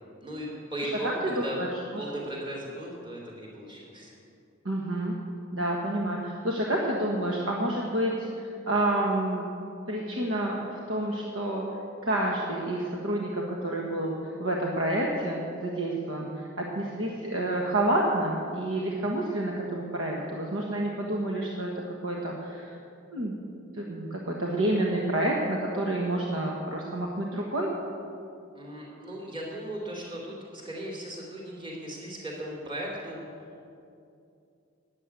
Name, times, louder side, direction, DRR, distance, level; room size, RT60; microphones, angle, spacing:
voice 1, 0.2-1.1 1.4-1.6 2.0-4.1 28.5-33.2, right 1 dB, 25° right, -2 dB, 3.0 m, -37 dB
voice 2, 0.8-2.0 4.6-5.1 5.5-9.5 9.9-11.6 12.0-22.8 23.1-23.4 23.7-27.7, right 1 dB, 85° right, -2 dB, 1.5 m, -29 dB
13.0 x 9.8 x 8.4 m, 2.6 s
head